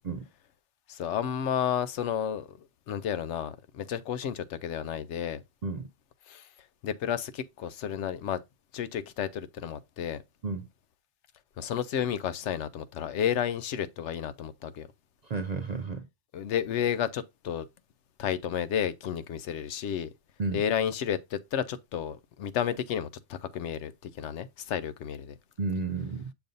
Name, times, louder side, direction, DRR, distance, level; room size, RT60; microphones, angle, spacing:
voice 1, 0.9-2.5 2.9-5.4 6.3-6.5 6.8-8.4 8.7-10.2 11.6-14.9 16.3-17.6 18.2-20.1 20.5-25.3, left 9 dB, 75° left, 0.9 m, -31 dB
voice 2, 15.2-16.1 20.4-20.6 25.6-26.3, right 4 dB, 55° right, 0.5 m, -32 dB
6.9 x 2.6 x 5.2 m
omnidirectional pair, 1.2 m